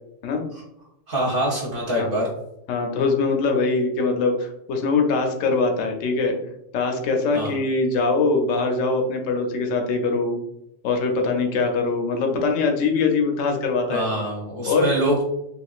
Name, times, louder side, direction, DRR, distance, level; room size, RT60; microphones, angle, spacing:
voice 1, 1.1-2.3 7.3-7.5 13.9-15.2, right 1 dB, 50° right, -4 dB, 0.9 m, -24 dB
voice 2, 2.7-6.4 6.7-10.4 10.8-14.1 14.6-14.9, left 3 dB, 75° left, 3 dB, 1.0 m, -22 dB
3.6 x 2.4 x 2.3 m, 0.82 s
omnidirectional pair, 1.4 m